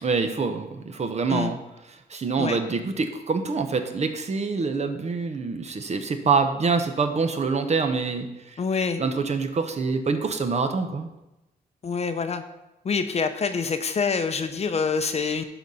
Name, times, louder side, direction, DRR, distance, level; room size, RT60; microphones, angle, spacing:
voice 1, 0.0-1.6 2.1-8.3 9.0-11.1, right 4 dB, 40° right, 7 dB, 0.9 m, -25 dB
voice 2, 8.6-9.0 11.8-12.4 12.8-15.4, left 5 dB, 40° left, 9 dB, 0.7 m, -26 dB
11.5 x 4.1 x 5.6 m, 0.96 s
cardioid pair, 105°, 17 cm